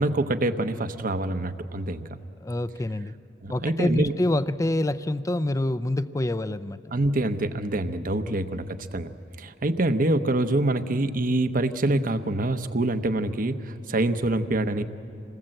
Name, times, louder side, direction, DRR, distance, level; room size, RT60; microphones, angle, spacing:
voice 1, 0.0-2.1 3.4-4.1 6.9-9.1 9.4-14.8, right 2 dB, 50° right, 10 dB, 0.9 m, -25 dB
voice 2, 2.4-3.1 3.5-6.8 8.3-8.6, left 1 dB, 20° left, 14 dB, 0.5 m, -26 dB
27.0 x 19.5 x 7.8 m, 2.6 s
head